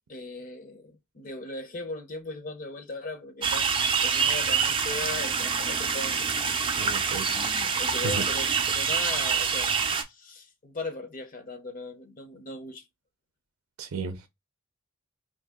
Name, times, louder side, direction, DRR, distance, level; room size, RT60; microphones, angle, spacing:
voice 1, 0.1-6.3 6.9-9.7 10.0-12.8, left 2 dB, 40° left, 0.6 m, -38 dB
sound 1, 3.4-10.0, right 6 dB, 25° right, 0.4 m, -26 dB
voice 2, 6.8-7.3 8.0-8.2 13.8-14.3, right 4 dB, 90° right, 0.5 m, -33 dB
2.7 x 2.7 x 3.5 m
head